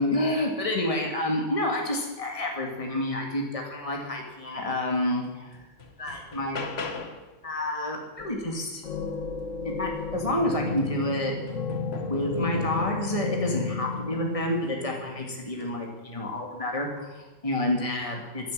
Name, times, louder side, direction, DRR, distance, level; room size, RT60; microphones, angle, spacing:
voice 1, 0.0-5.5 6.0-6.6 7.4-8.8 9.8-11.3 12.1-18.5, left 1 dB, 25° left, 1 dB, 2.5 m, -29 dB
sound 1, 5.0-5.1 5.5-7.3 9.7-9.8 10.2-13.2 13.9-14.5 15.5-15.8, left 3 dB, 55° left, 1.6 m, -39 dB
sound 2, 8.2-8.6 8.8-15.6, left 4 dB, 75° left, 1.8 m, -33 dB
11.5 x 11.0 x 8.8 m, 1.1 s
omnidirectional pair, 1.3 m